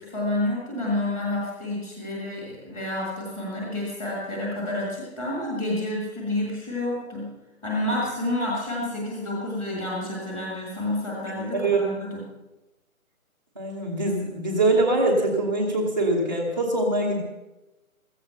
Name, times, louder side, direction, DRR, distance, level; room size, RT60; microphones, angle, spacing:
voice 1, 0.0-7.3 7.6-12.2, left 1 dB, 5° left, -4 dB, 1.7 m, -29 dB
voice 2, 13.6-17.2, right 2 dB, 15° right, -6 dB, 1.0 m, -23 dB
15.0 x 14.5 x 5.7 m, 1.0 s
figure-of-eight pair, 160°, 43 cm